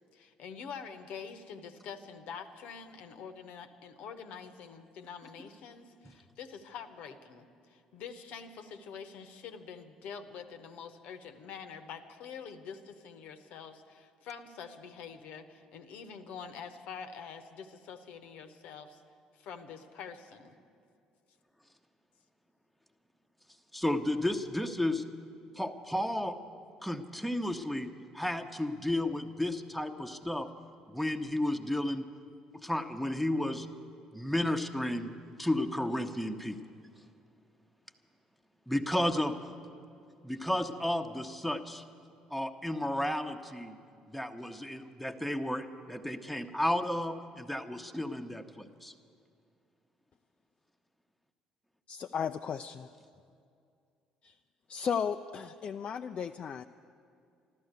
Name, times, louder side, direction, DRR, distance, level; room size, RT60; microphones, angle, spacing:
voice 1, 0.1-19.0 19.3-20.6, left 6 dB, 60° left, 8 dB, 1.0 m, -46 dB
voice 2, 23.7-25.0 25.5-26.4 26.8-30.5 30.9-32.1 32.5-33.7 34.1-35.1 35.4-36.6 38.7-39.4 40.2-41.8 42.3-43.8 44.1-48.9, left 1 dB, ahead, 5 dB, 1.0 m, -32 dB
voice 3, 51.9-52.9 54.2-54.3 54.7-56.6, left 7 dB, 45° left, 7 dB, 0.4 m, -35 dB
13.5 x 13.0 x 8.1 m, 2.4 s
figure-of-eight pair, 50°, 3 cm